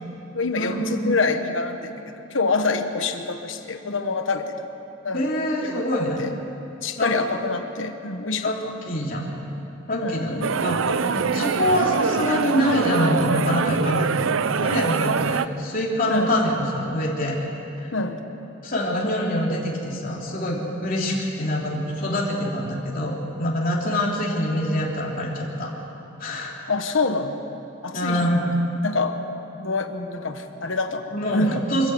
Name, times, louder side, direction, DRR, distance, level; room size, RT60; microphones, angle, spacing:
voice 1, 0.3-4.7 5.0-5.3 5.6-6.4 6.8-8.7 10.0-10.5 11.2-11.3 16.1-16.4 17.9-18.2 26.7-27.4 27.8-28.4 28.8-29.2 29.6-31.6, left 3 dB, 70° left, 7 dB, 1.3 m, -26 dB
voice 2, 5.1-6.2 7.0-7.1 8.4-8.6 8.8-9.3 9.9-17.4 17.8-17.9 18.6-25.7 26.2-26.5 27.9-28.4 31.1-31.9, left 1 dB, 45° left, -3 dB, 3.4 m, -25 dB
sound 1, 10.4-15.5, right 5 dB, 75° right, 0.5 m, -24 dB
25.0 x 14.5 x 8.0 m, 2.9 s
head